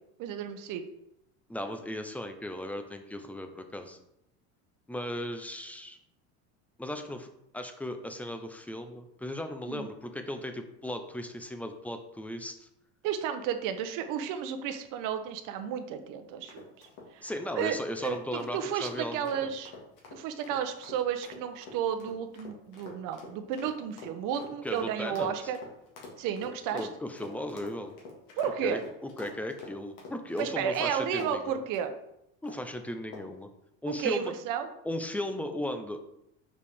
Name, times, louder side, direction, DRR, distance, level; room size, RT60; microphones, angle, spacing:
voice 1, 0.2-0.8 9.7-9.9 13.0-16.6 17.1-19.7 20.1-25.6 26.2-26.9 28.4-28.8 30.4-31.9 33.9-34.7, right 8 dB, 55° right, 8 dB, 0.9 m, -32 dB
voice 2, 1.5-4.0 4.9-6.0 6.8-7.3 7.5-12.7 17.2-19.5 24.6-25.3 26.7-27.9 28.6-31.6 32.4-33.5 33.8-34.3 34.8-36.0, left 1 dB, 5° left, 6 dB, 0.7 m, -36 dB
sound 1, 16.5-31.4 31.7-31.9 32.4-32.7 33.1-33.4, left 3 dB, 65° left, 2.0 m, -47 dB
6.5 x 4.8 x 3.5 m, 0.80 s
supercardioid pair, 110°, 37 cm